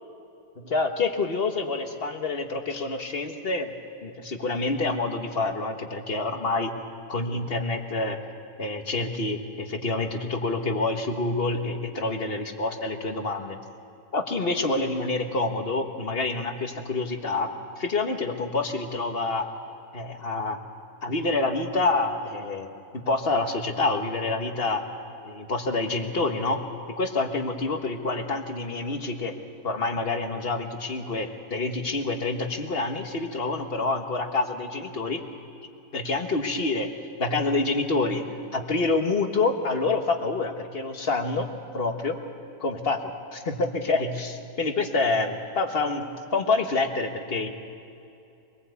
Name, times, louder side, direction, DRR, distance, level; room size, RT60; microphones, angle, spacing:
voice 1, 0.6-3.7 4.0-6.8 7.1-8.2 8.6-13.6 14.1-19.5 19.9-20.6 21.0-22.7 22.9-24.8 25.2-29.3 29.6-35.2 35.9-36.9 37.2-38.2 38.5-41.5 41.7-42.2 42.6-46.0 46.3-47.5, left 3 dB, 40° left, 5 dB, 1.6 m, -27 dB
24.5 x 19.0 x 8.2 m, 2.6 s
omnidirectional pair, 1.7 m